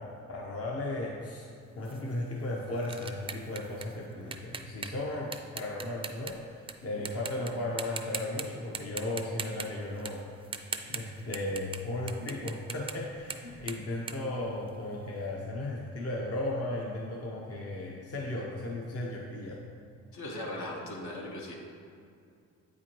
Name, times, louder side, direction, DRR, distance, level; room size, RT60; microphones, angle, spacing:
voice 1, 0.0-1.5 1.7-10.3 10.9-19.6, left 1 dB, 50° left, -3 dB, 0.9 m, -35 dB
sound 1, 1.8-6.7 7.1-7.5 7.8-8.4 8.7-11.8 12.1-15.1, right 5 dB, 20° right, 0.4 m, -40 dB
voice 2, 20.1-21.5, left 1 dB, 70° left, -1 dB, 1.2 m, -38 dB
8.4 x 4.8 x 3.0 m, 2.4 s
cardioid pair, 90°, 30 cm